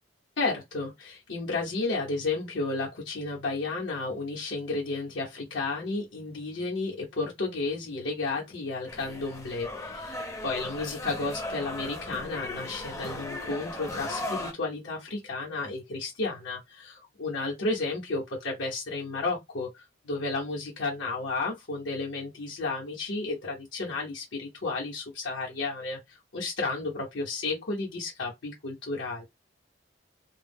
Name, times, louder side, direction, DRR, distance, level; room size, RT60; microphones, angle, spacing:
voice 1, 0.4-29.3, left 3 dB, 85° left, 0.9 m, -32 dB
sound 1, 8.9-14.5, left 2 dB, 15° left, 0.5 m, -37 dB
2.2 x 2.0 x 3.4 m
head